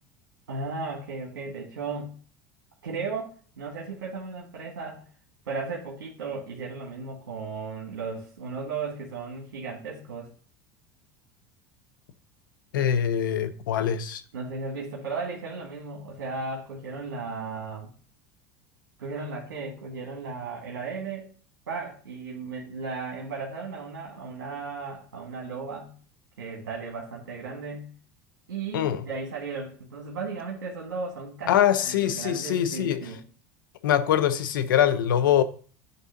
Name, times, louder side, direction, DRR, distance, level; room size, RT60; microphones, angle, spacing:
voice 1, 0.5-2.2 2.8-5.1 5.5-10.3 14.3-17.9 19.0-21.3 21.7-25.9 26.4-27.9 28.5-33.2, right 4 dB, 90° right, 1.8 m, -35 dB
voice 2, 12.7-14.2 28.7-29.0 31.5-33.0 33.8-35.4, left 10 dB, 85° left, 0.8 m, -23 dB
9.6 x 3.7 x 5.8 m
hypercardioid pair, 85°, 11 cm